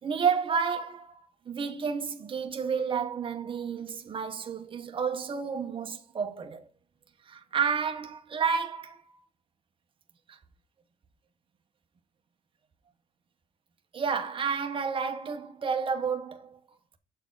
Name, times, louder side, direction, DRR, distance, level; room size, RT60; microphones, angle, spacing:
voice 1, 0.0-6.7 7.3-9.0 10.3-10.4 13.9-16.6, right 6 dB, 30° right, 1.0 m, -31 dB
7.2 x 4.5 x 3.8 m
cardioid pair, 110°, 17 cm